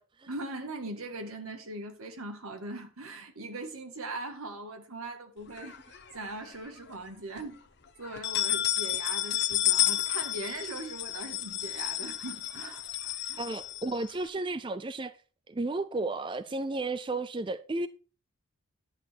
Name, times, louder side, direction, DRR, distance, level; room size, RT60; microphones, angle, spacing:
voice 1, 0.3-7.6 8.0-13.4, right 2 dB, 90° right, 1.8 m, -40 dB
sound 1, 5.6-6.5 6.9-7.0 7.4-7.5 8.0-14.2, left 14 dB, 50° left, 1.0 m, -31 dB
voice 2, 13.4-15.1 15.5-17.9, right 2 dB, 25° right, 0.4 m, -33 dB
10.5 x 7.2 x 4.5 m
head